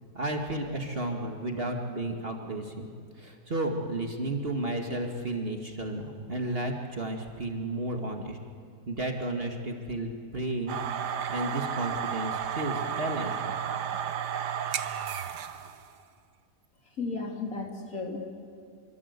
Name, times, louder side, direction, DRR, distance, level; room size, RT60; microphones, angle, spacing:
voice 1, 0.1-2.9 3.2-8.4 8.9-10.8 11.3-13.4, right 1 dB, 35° right, 3 dB, 2.0 m, -32 dB
sound 1, 10.7-15.8, right 8 dB, 80° right, 1.6 m, -32 dB
voice 2, 17.0-18.3, left 3 dB, 55° left, 2 dB, 3.2 m, -34 dB
26.0 x 24.0 x 8.2 m, 2.3 s
omnidirectional pair, 1.8 m